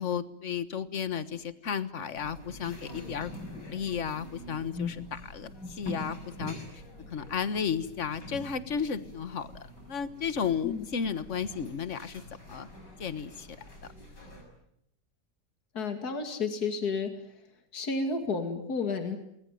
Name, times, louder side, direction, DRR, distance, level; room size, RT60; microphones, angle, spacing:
voice 1, 0.0-6.8 7.1-9.6 9.9-12.2 12.5-12.7 13.0-13.5, left 7 dB, 45° left, 13 dB, 1.6 m, -33 dB
sound 1, 2.1-14.4, left 1 dB, 80° left, 7.1 m, -44 dB
voice 2, 15.7-17.1 17.7-19.2, left 4 dB, 60° left, 6 dB, 2.9 m, -31 dB
28.0 x 21.0 x 9.2 m, 0.77 s
omnidirectional pair, 1.8 m